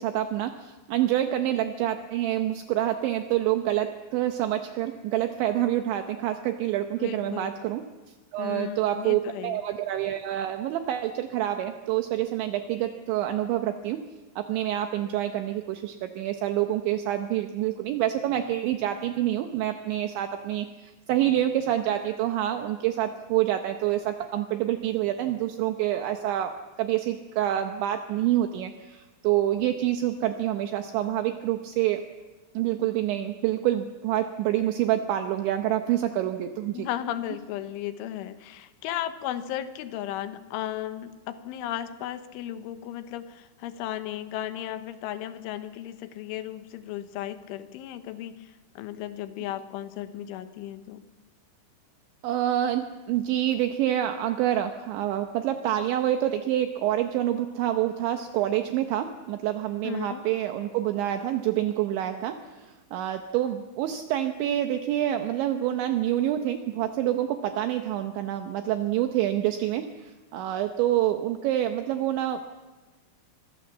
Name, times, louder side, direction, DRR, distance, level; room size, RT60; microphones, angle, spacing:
voice 1, 0.0-7.8 8.3-14.0 14.4-32.0 32.5-36.9 52.2-72.6, right 12 dB, 75° right, 7 dB, 3.0 m, -27 dB
voice 2, 7.0-7.5 8.4-9.6 36.7-51.0 59.8-60.3, left 12 dB, 80° left, 11 dB, 3.4 m, -35 dB
25.5 x 21.5 x 7.3 m, 1.2 s
omnidirectional pair, 5.8 m